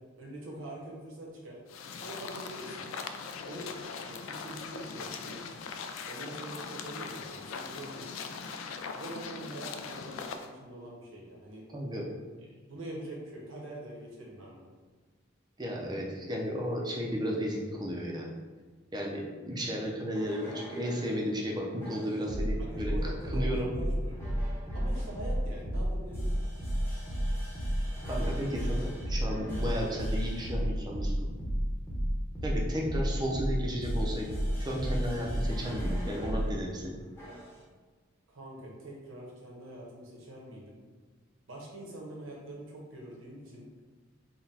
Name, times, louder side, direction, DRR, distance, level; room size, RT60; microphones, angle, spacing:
voice 1, 0.2-1.6 2.0-2.9 3.5-5.4 6.1-8.1 8.9-11.6 12.7-14.7 22.6-24.2 24.7-26.5 38.3-40.8 41.5-43.6, right 1 dB, 75° right, -3 dB, 1.0 m, -44 dB
sound 1, 1.7-10.5, left 5 dB, 75° left, 0.3 m, -40 dB
voice 2, 11.7-12.0 15.6-18.3 18.9-22.9 23.3-23.7 28.0-31.1 32.4-34.3 34.7-36.9, equal, 20° right, -2 dB, 0.5 m, -34 dB
sound 2, 20.1-21.1 21.8-36.5 37.2-37.5, equal, 15° left, 0.9 m, -32 dB
3.9 x 2.2 x 4.0 m, 1.4 s
head